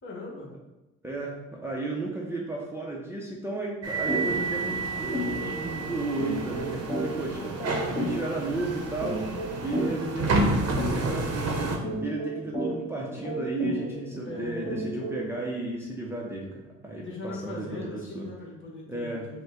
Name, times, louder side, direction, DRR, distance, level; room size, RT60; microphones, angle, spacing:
voice 1, 0.0-0.5 14.2-14.8 16.9-19.4, left 2 dB, 40° left, -3 dB, 1.4 m, -39 dB
voice 2, 1.0-7.5 7.9-9.2 9.6-18.3 18.9-19.4, right 2 dB, 10° right, -3 dB, 0.6 m, -34 dB
sound 1, 3.8-11.8, right 2 dB, 55° right, 0.8 m, -30 dB
sound 2, 4.1-4.3 4.6-4.8 5.1-15.4, equal, 20° left, 1.2 m, -33 dB
5.2 x 2.2 x 3.8 m, 1.0 s
cardioid pair, 90°, 30 cm